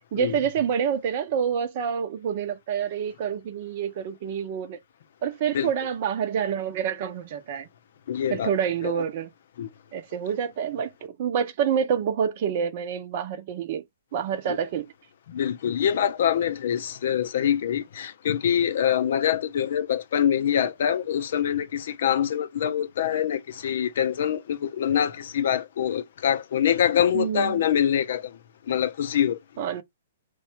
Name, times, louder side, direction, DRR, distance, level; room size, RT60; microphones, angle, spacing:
voice 1, 0.1-4.8 5.2-7.7 8.3-9.3 9.9-13.8 14.1-14.9 27.1-27.6 29.6-29.8, right 8 dB, 45° right, 0.7 m, -27 dB
voice 2, 8.1-8.5 8.8-9.0 9.6-9.7 14.5-14.6 15.3-28.4 28.7-29.4, left 9 dB, 55° left, 0.5 m, -25 dB
3.1 x 2.3 x 4.3 m
figure-of-eight pair, 120°, 0 cm